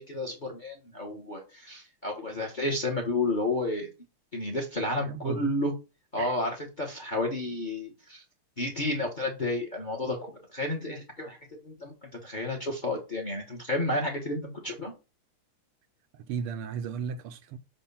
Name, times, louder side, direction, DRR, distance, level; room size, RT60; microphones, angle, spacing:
voice 1, 0.0-3.9 4.3-5.7 6.1-8.2 8.6-11.4 11.6-14.9, left 2 dB, 30° left, 1.0 m, -31 dB
voice 2, 5.0-5.5 6.2-6.4 16.1-17.6, right 7 dB, 80° right, 1.6 m, -35 dB
7.2 x 2.6 x 5.3 m
omnidirectional pair, 2.4 m